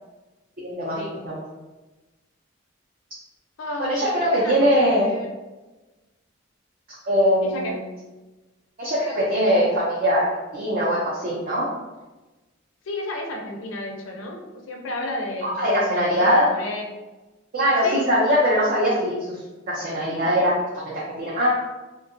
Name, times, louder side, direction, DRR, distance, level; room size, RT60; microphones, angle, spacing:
voice 1, 0.6-1.0 1.2-1.4 3.8-5.1 7.0-7.8 8.8-11.7 15.4-16.5 17.5-19.4 19.7-21.5, equal, 50° right, -7 dB, 0.6 m, -21 dB
voice 2, 3.6-5.3 7.4-7.8 12.8-16.9 17.8-18.0, left 1 dB, 85° left, 1 dB, 0.5 m, -33 dB
2.7 x 2.3 x 2.5 m, 1.1 s
head